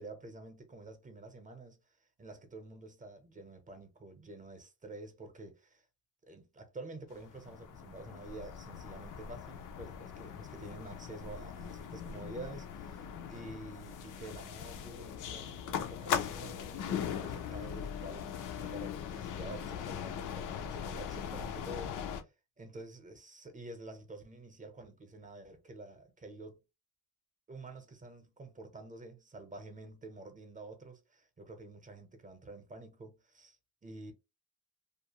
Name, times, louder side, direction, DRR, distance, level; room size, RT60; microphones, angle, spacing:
voice 1, 0.0-1.8 2.2-5.8 6.3-22.3 22.6-26.6 27.5-33.6 33.8-34.1, right 2 dB, 25° right, 0.8 m, -49 dB
sound 1, 7.1-22.2, left 8 dB, 75° left, 0.5 m, -40 dB
2.5 x 2.2 x 2.9 m
cardioid pair, 110°, 31 cm